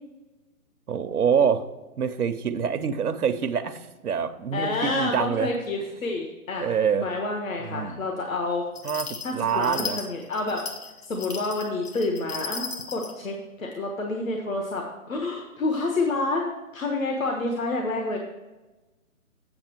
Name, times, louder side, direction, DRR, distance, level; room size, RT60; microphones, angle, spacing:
voice 1, 0.9-1.6 2.0-5.5 6.6-7.1 7.7-8.0 8.8-10.0, right 7 dB, 90° right, 9 dB, 0.9 m, -26 dB
voice 2, 4.5-8.7 9.2-10.7 11.0-18.2, left 2 dB, 65° left, 2 dB, 1.4 m, -29 dB
sound 1, 8.7-13.1, left 5 dB, 90° left, 1.5 m, -36 dB
8.7 x 6.1 x 4.5 m, 1.1 s
hypercardioid pair, 175°, 44 cm